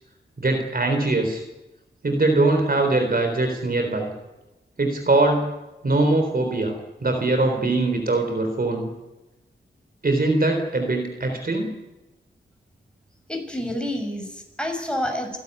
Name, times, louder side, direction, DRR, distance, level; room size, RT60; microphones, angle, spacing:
voice 1, 0.4-1.4 2.0-4.1 4.8-5.5 5.8-6.7 7.0-8.9 10.0-11.7, right 2 dB, 50° right, 5 dB, 4.0 m, -22 dB
voice 2, 13.3-15.4, left 1 dB, 5° left, 3 dB, 6.6 m, -28 dB
29.0 x 12.0 x 9.9 m, 1.0 s
cardioid pair, 65°, 20 cm